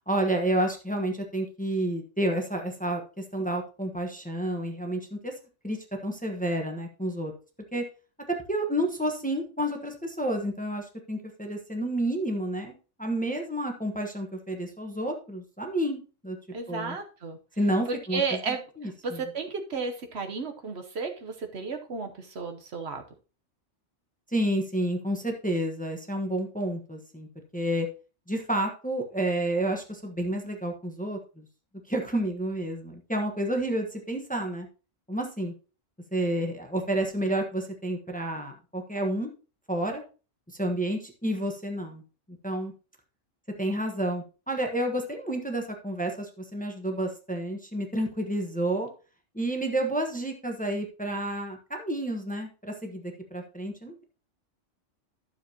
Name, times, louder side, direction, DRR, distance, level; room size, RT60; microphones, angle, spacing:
voice 1, 0.1-5.3 5.6-7.3 7.7-7.8 8.5-16.4 16.7-17.0 17.6-18.2 18.5-19.2 24.3-27.3 27.5-27.9 28.3-31.4 31.9-34.7 35.1-35.5 36.1-39.3 39.7-40.0 40.5-42.0 42.4-42.7 43.6-48.9 49.3-54.0, right 1 dB, 5° left, 2 dB, 1.1 m, -30 dB
voice 2, 16.5-17.4 17.9-23.0, right 4 dB, 60° right, 5 dB, 1.2 m, -33 dB
12.0 x 7.1 x 2.9 m, 0.34 s
omnidirectional pair, 1.3 m